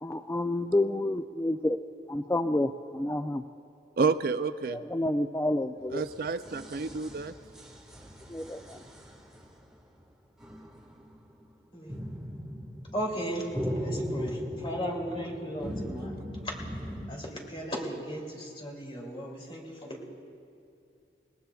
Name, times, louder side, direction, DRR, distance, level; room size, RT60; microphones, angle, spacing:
voice 1, 0.0-1.8 2.1-3.4 4.7-6.0 8.3-8.8, left 1 dB, 15° left, 0.3 m, -29 dB
voice 2, 4.0-4.8 5.9-7.3, right 4 dB, 55° right, 0.4 m, -29 dB
sound 1, 5.8-9.7 10.4-11.5 11.9-17.1, equal, 5° right, 1.6 m, -38 dB
voice 3, 12.9-13.5 13.8-16.1 16.4-16.5 17.1-20.1, equal, 30° left, 2.8 m, -36 dB
29.0 x 18.5 x 2.3 m
head